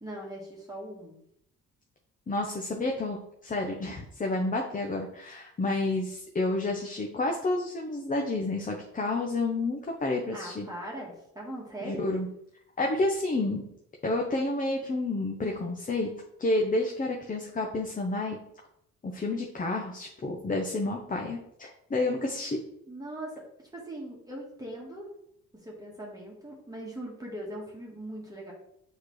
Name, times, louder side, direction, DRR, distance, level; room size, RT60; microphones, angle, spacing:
voice 1, 0.0-1.2 10.3-12.0 22.9-23.4 23.7-25.1 25.5-28.5, right 1 dB, 10° right, -3 dB, 1.5 m, -40 dB
voice 2, 2.3-10.7 11.8-12.3 12.8-13.6 14.0-16.1 16.4-18.4 19.0-22.6, left 2 dB, 25° left, 1 dB, 0.8 m, -30 dB
6.4 x 4.9 x 3.2 m, 0.76 s
cardioid pair, 90°, 30 cm